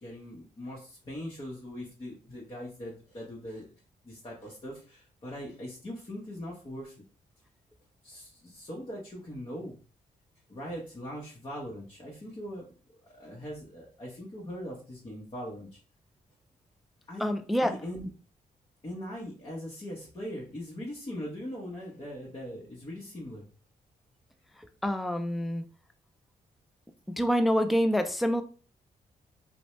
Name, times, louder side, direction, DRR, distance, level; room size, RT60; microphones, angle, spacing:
voice 1, 0.0-3.7 4.0-6.9 8.0-9.8 10.5-12.7 13.2-15.7 17.1-17.3 17.6-18.1 18.8-23.5, equal, 35° left, 0.9 m, -40 dB
voice 2, 17.2-17.8 24.8-25.6 27.2-28.4, equal, ahead, 0.3 m, -26 dB
2.6 x 2.1 x 3.0 m
cardioid pair, 60°, 16 cm